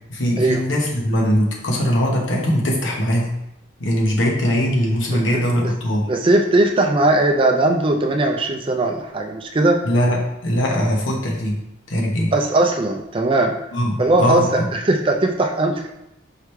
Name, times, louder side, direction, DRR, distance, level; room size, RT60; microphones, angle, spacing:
voice 1, 0.1-3.3 3.8-6.1 9.8-11.6 11.9-12.3 13.7-14.7, equal, 85° left, -1 dB, 1.0 m, -20 dB
voice 2, 5.1-5.7 6.1-9.8 12.3-13.5 14.0-14.4 14.7-15.9, right 2 dB, 25° right, 3 dB, 0.4 m, -19 dB
4.8 x 3.1 x 3.2 m, 0.85 s
head